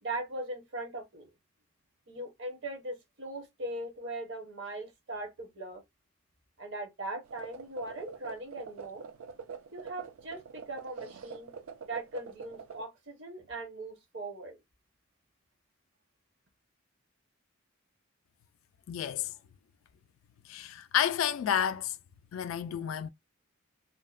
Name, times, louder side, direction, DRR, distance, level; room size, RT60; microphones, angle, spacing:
voice 1, 0.0-1.3 2.1-5.8 6.6-9.0 9.7-11.5 11.8-14.6, right 2 dB, 60° right, 0.8 m, -40 dB
sound 1, 7.2-12.8, right 6 dB, 85° right, 0.4 m, -45 dB
voice 2, 18.9-19.3 20.5-22.0 22.3-23.1, left 9 dB, 75° left, 0.3 m, -30 dB
2.7 x 2.0 x 2.3 m
head